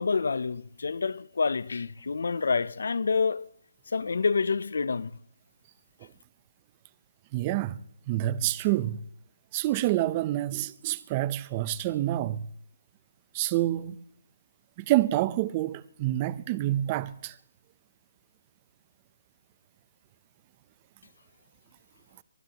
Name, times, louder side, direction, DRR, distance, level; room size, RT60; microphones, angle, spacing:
voice 1, 0.0-3.5 3.9-5.1, left 4 dB, 70° left, 0.5 m, -27 dB
voice 2, 7.3-7.8 8.1-9.0 9.5-12.5 13.3-14.0 14.8-17.3, right 14 dB, 20° right, 0.5 m, -27 dB
23.5 x 20.0 x 2.9 m
hypercardioid pair, 165°, 0 cm